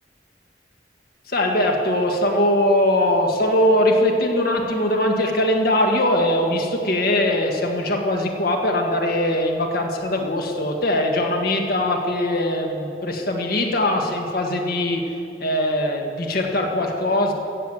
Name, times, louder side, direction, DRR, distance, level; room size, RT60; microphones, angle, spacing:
voice 1, 1.3-15.0 15.4-17.3, left 1 dB, 55° left, 2 dB, 1.7 m, -21 dB
15.0 x 8.1 x 7.7 m, 2.6 s
head